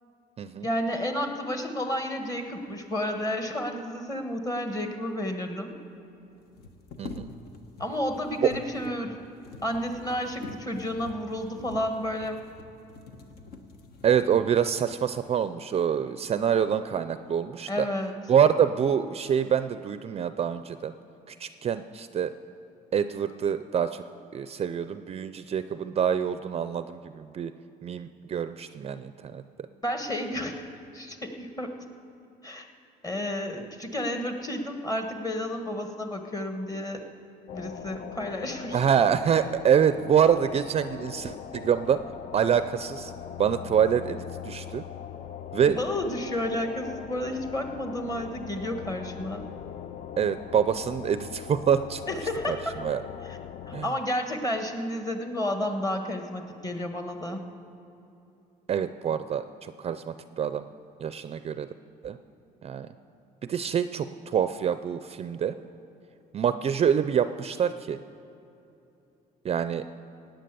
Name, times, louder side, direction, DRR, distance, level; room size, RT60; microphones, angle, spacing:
voice 1, 0.6-5.8 7.8-9.2 9.6-12.4 17.7-18.2 29.8-30.7 30.9-31.8 32.4-32.7 33.0-37.0 37.5-39.1 45.8-49.5 52.1-52.7 53.2-53.4 53.7-57.5, left 1 dB, 20° left, 5 dB, 1.5 m, -31 dB
sound 1, 4.9-5.0 5.2-5.3 6.4-14.7 15.4-15.5 16.0-16.6 17.0-17.5, left 3 dB, 65° left, 1.2 m, -46 dB
voice 2, 14.0-17.9 18.3-20.9 21.3-22.3 22.9-24.0 24.3-27.5 27.8-29.4 38.7-42.0 42.3-43.1 43.4-44.8 45.5-45.8 50.2-52.0 52.5-52.6 52.8-53.0 53.7-53.9 58.7-60.6 61.0-61.7 62.0-62.2 62.6-62.9 63.5-65.6 66.3-68.0 69.4-69.8, right 8 dB, 35° right, 11 dB, 0.4 m, -26 dB
sound 2, 37.5-53.9, left 8 dB, 45° left, 0.5 m, -41 dB
17.0 x 9.1 x 6.8 m, 2.9 s
cardioid pair, 110°, 17 cm